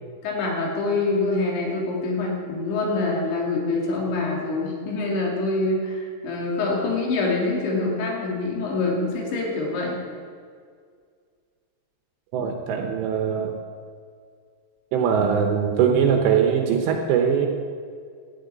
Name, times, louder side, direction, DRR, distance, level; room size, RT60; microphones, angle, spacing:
voice 1, 0.2-10.0, left 3 dB, 70° left, -2 dB, 4.8 m, -25 dB
voice 2, 12.3-13.6 14.9-17.5, right 7 dB, 75° right, 3 dB, 3.0 m, -21 dB
13.0 x 7.9 x 9.5 m, 2.1 s
omnidirectional pair, 5.5 m